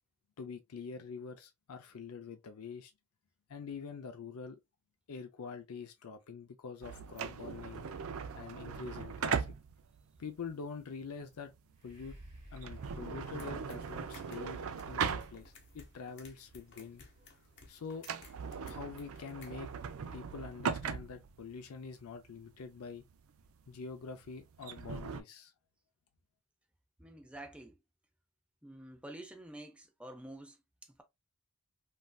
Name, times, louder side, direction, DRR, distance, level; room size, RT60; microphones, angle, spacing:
voice 1, 0.4-2.9 3.5-4.6 5.1-7.9 8.3-9.5 10.2-11.5 11.8-12.2 12.5-14.6 14.9-17.0 17.7-18.1 18.6-19.7 20.1-23.0 23.7-25.5, left 5 dB, 80° left, 0.5 m, -45 dB
sound 1, 6.8-15.8 16.2-16.3 16.9-17.2 17.5-17.6 17.9-25.2, right 6 dB, 70° right, 0.4 m, -39 dB
sound 2, 11.7-19.5 20.1-20.2, right 1 dB, 30° right, 1.2 m, -56 dB
sound 3, 13.2-19.6, left 4 dB, 55° left, 1.0 m, -59 dB
voice 2, 27.0-27.8 28.6-31.0, right 1 dB, 5° right, 0.5 m, -49 dB
3.2 x 2.6 x 2.2 m
head